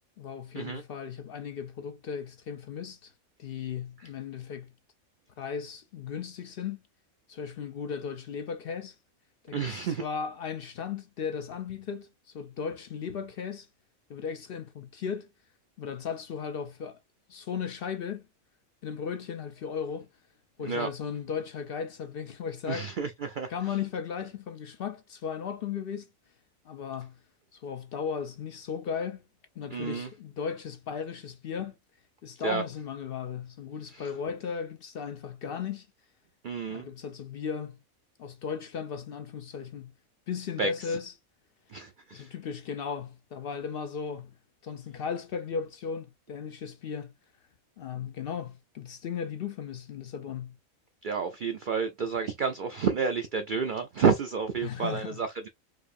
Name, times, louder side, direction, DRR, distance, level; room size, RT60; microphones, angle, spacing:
voice 1, 0.2-3.1 3.4-4.7 5.4-6.8 7.3-9.0 9.4-13.7 14.1-15.3 15.8-17.0 17.3-18.3 18.8-20.1 20.6-22.9 23.5-26.1 26.6-27.2 27.5-29.2 29.6-31.8 32.2-35.9 36.7-37.8 38.2-39.9 40.3-41.1 42.1-44.3 44.6-47.1 47.8-50.6 54.6-55.2, left 6 dB, 65° left, 0.6 m, -36 dB
voice 2, 9.5-10.0 20.6-20.9 22.7-23.5 29.7-30.1 32.4-32.6 33.9-34.1 36.4-36.9 40.6-41.0 41.7-42.3 51.0-55.5, right 6 dB, 75° right, 0.4 m, -30 dB
4.7 x 2.5 x 2.5 m
omnidirectional pair, 1.4 m